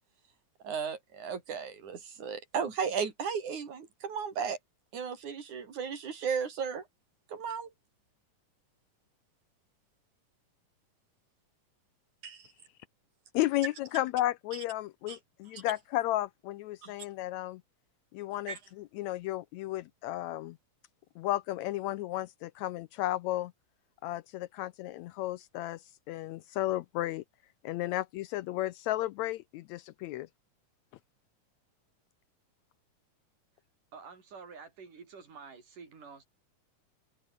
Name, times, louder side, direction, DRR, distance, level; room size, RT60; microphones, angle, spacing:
voice 1, 0.6-4.6 4.9-6.8 7.3-7.7 12.2-12.5 15.1-15.2 15.5-15.6 16.8-16.9 18.5-18.6, right 6 dB, 70° right, 4.8 m, -35 dB
voice 2, 13.3-17.6 18.1-20.6 21.2-23.5 24.0-25.8 26.1-27.2 27.6-30.3, left 15 dB, 80° left, 1.7 m, -33 dB
voice 3, 33.9-36.2, right 5 dB, 85° right, 6.4 m, -49 dB
omnidirectional pair, 3.6 m